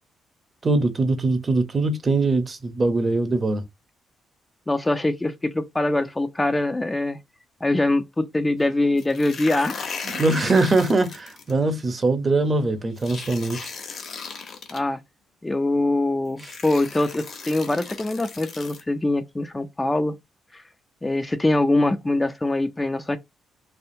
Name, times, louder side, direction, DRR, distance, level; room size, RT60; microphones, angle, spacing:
voice 1, 0.6-3.6 10.0-13.7, right 3 dB, 35° right, 0.7 m, -22 dB
voice 2, 4.7-7.2 7.6-9.8 14.7-15.0 15.4-20.1 20.5-20.6 21.0-23.2, left 2 dB, 20° left, 0.4 m, -23 dB
sound 1, 9.0-11.5 13.0-14.8 15.8-15.9 16.4-18.8, left 5 dB, 60° left, 1.0 m, -36 dB
3.4 x 2.2 x 2.7 m
cardioid pair, 75°, 0 cm